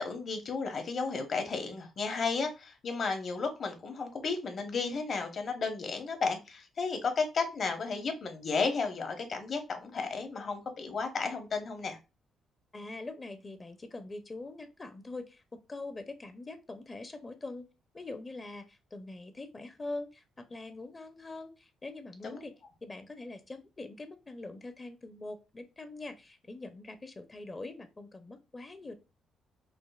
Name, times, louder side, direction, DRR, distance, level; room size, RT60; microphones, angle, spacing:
voice 1, 0.0-12.0 22.2-22.4, left 4 dB, 50° left, 0.9 m, -33 dB
voice 2, 12.7-15.4 15.7-17.7 17.9-22.5 22.8-28.9, left 2 dB, 25° left, 0.5 m, -43 dB
5.1 x 2.0 x 2.3 m
cardioid pair, 90°, 0 cm